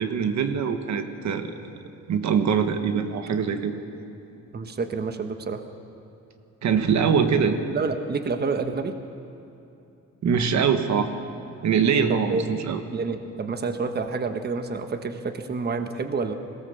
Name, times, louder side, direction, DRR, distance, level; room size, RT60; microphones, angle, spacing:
voice 1, 0.0-1.5 2.1-3.7 6.6-7.6 10.2-11.1 11.6-12.8, right 6 dB, 65° right, 7 dB, 1.5 m, -23 dB
voice 2, 4.5-5.6 7.7-9.0 12.1-12.4 12.9-16.3, right 4 dB, 35° right, 7 dB, 1.2 m, -28 dB
21.5 x 17.5 x 7.0 m, 2.8 s
cardioid pair, 90°, 30 cm